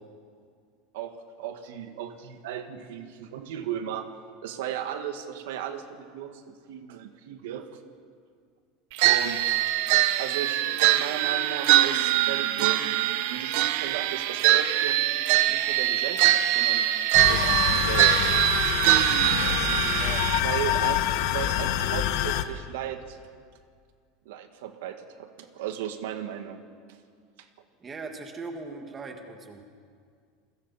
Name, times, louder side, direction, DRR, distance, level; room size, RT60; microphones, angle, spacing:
voice 1, 0.9-4.1 4.4-7.8 9.0-9.4 10.1-12.9 13.3-15.1 15.5-16.8 17.3-18.2 18.5-18.8 19.4-23.2 24.2-26.6 27.4-27.5, right 10 dB, 80° right, 7 dB, 1.7 m, -36 dB
sound 1, 9.0-20.4, right 14 dB, 55° right, 0.8 m, -23 dB
sound 2, 17.1-22.4, left 11 dB, 55° left, 1.0 m, -26 dB
voice 2, 19.9-20.3 27.8-29.6, right 3 dB, 15° right, 4 dB, 1.8 m, -39 dB
29.0 x 22.0 x 4.2 m, 2.1 s
supercardioid pair, 175°, 0 cm